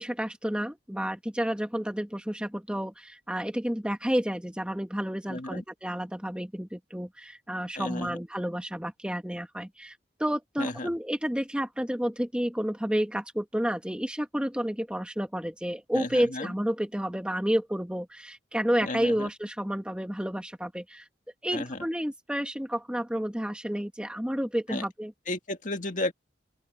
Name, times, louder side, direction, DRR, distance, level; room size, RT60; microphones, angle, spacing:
voice 1, 0.0-21.0 21.4-25.1, equal, 5° right, 1.2 m, -30 dB
voice 2, 5.3-5.6 7.8-8.2 10.6-10.9 15.9-16.5 18.8-19.3 21.5-21.8 24.7-24.8 25.3-26.1, left 2 dB, 45° left, 2.0 m, -33 dB
open air
head